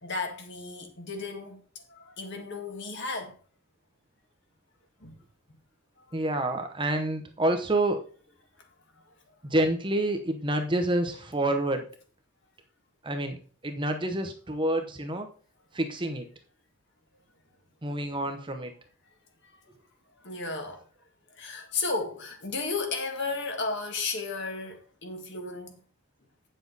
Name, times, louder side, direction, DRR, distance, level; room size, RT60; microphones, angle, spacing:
voice 1, 0.0-3.3 5.0-5.2 6.0-6.2 20.2-20.8 21.4-25.7, left 3 dB, 50° left, 1.7 m, -34 dB
voice 2, 6.1-8.0 9.4-11.9 13.0-13.4 13.6-15.3 15.7-16.3 17.8-18.7, right 1 dB, 20° right, 0.9 m, -28 dB
8.8 x 7.2 x 4.0 m
head